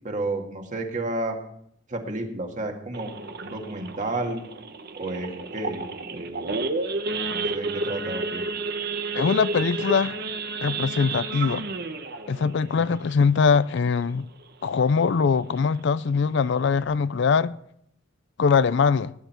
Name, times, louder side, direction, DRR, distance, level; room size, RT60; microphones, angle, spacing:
voice 1, 0.0-1.4 1.9-4.4 5.0-6.5 7.3-8.4, right 2 dB, 40° right, 2.0 m, -31 dB
Idling / Accelerating revving vroom / Sawing, 2.9-14.0 14.4-14.6 14.9-15.0 15.4-15.7 16.2-16.3 16.5-16.8, right 3 dB, 55° right, 1.1 m, -31 dB
voice 2, 9.1-10.2 10.6-11.7 12.3-14.3 14.6-17.5 18.4-19.1, left 5 dB, 65° left, 0.4 m, -22 dB
16.5 x 10.0 x 4.5 m
head